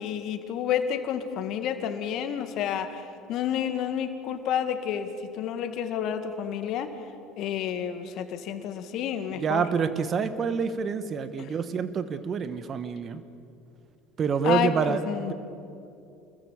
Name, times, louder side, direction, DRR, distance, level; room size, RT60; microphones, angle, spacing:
voice 1, 0.0-6.9 7.4-9.7 11.4-11.5 14.4-15.3, left 9 dB, 55° left, 8 dB, 2.0 m, -30 dB
voice 2, 9.4-13.2 14.2-15.0 15.3-15.4, right 6 dB, 40° right, 12 dB, 1.5 m, -27 dB
28.0 x 22.0 x 7.3 m, 2.7 s
hypercardioid pair, 70°, 0 cm